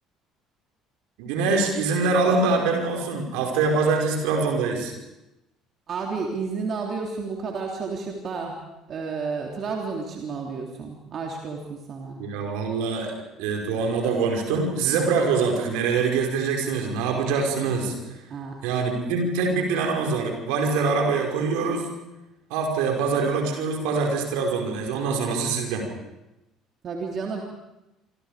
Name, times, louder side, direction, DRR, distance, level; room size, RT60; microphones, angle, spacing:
voice 1, 1.2-4.9 12.2-13.1 13.4-17.9 18.6-21.9 22.5-25.9, right 4 dB, 70° right, 2 dB, 5.3 m, -24 dB
voice 2, 5.9-8.6 8.9-12.2 18.3-18.6 26.8-27.4, right 4 dB, 45° right, 0 dB, 3.4 m, -31 dB
27.0 x 25.5 x 5.1 m, 0.95 s
hypercardioid pair, 60°, 0 cm